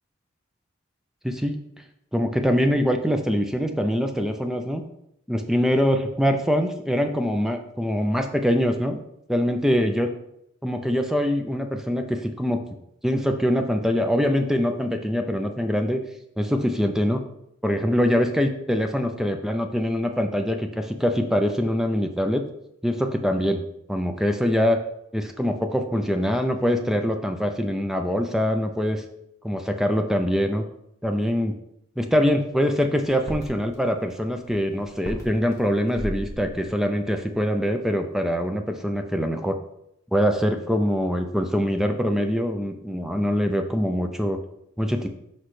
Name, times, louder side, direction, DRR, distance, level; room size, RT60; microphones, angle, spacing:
voice 1, 1.2-1.6 2.1-4.8 5.3-9.0 9.3-10.1 10.6-12.6 13.0-16.0 16.4-17.2 17.6-22.4 22.8-23.6 23.9-24.8 25.1-29.0 29.4-30.6 31.0-31.6 32.0-39.6 40.1-44.4 44.8-45.1, equal, ahead, 5 dB, 0.4 m, -23 dB
sound 1, 33.0-37.7 38.2-38.3, equal, 15° left, 1.3 m, -38 dB
6.0 x 5.5 x 3.2 m, 0.78 s
head